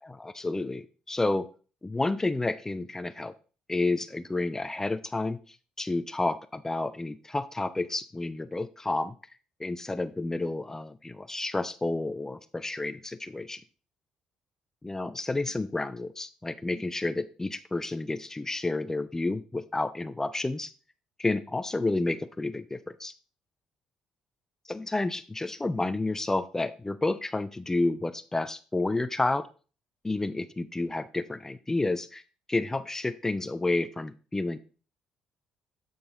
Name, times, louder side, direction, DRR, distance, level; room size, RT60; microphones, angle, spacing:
voice 1, 0.0-1.5 1.8-3.3 3.7-9.2 9.6-13.6 14.8-20.7 21.2-23.1 24.7-29.5 30.0-32.2 32.5-34.6, left 2 dB, 20° left, 13 dB, 0.5 m, -30 dB
8.7 x 4.0 x 3.7 m, 0.37 s
hypercardioid pair, 55°, 3 cm